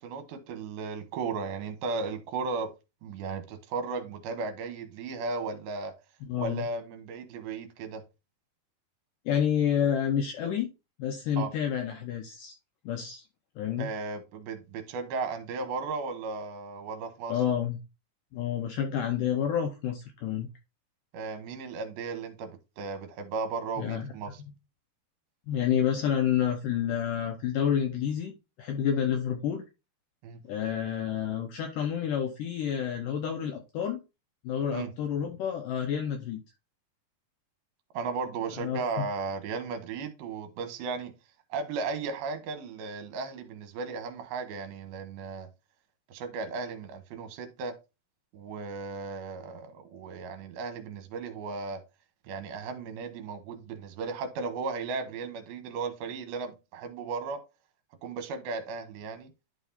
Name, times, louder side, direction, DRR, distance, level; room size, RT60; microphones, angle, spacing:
voice 1, 0.0-2.7 3.0-5.9 6.4-8.0 11.4-11.5 13.8-17.3 21.1-24.4 30.2-30.4 34.7-34.9 37.9-41.1 41.5-45.5 46.1-47.8 48.3-51.8 52.2-57.4 58.0-59.3, right 4 dB, 75° right, 2.7 m, -35 dB
voice 2, 6.3-6.7 9.3-10.7 11.0-12.5 12.9-13.3 13.6-13.9 17.3-17.8 18.3-20.5 23.8-24.1 25.5-28.3 28.6-29.6 30.5-34.0 34.4-36.4 38.6-38.8, left 9 dB, 80° left, 2.0 m, -29 dB
11.0 x 4.1 x 2.7 m
omnidirectional pair, 4.6 m